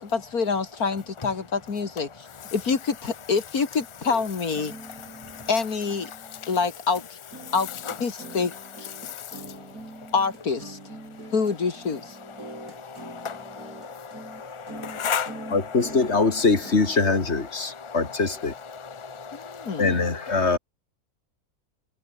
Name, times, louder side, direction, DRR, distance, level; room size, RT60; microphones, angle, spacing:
voice 1, 0.0-4.7 5.5-6.1 6.5-7.2 7.5-7.7 8.0-8.9 10.1-10.8 11.3-12.2 19.3-20.0, left 5 dB, 70° left, 2.6 m, -26 dB
sound 1, 4.0-6.8 7.1-17.2, right 2 dB, 75° right, 7.3 m, -44 dB
voice 2, 5.1-5.5 6.3-6.4 7.9-8.0 9.0-9.7 10.0-10.1 12.4-15.8 17.6-18.2 18.7-19.8, left 6 dB, 20° left, 1.6 m, -35 dB
voice 3, 15.5-18.5 19.8-20.6, left 4 dB, 45° left, 2.9 m, -23 dB
omnidirectional pair, 1.6 m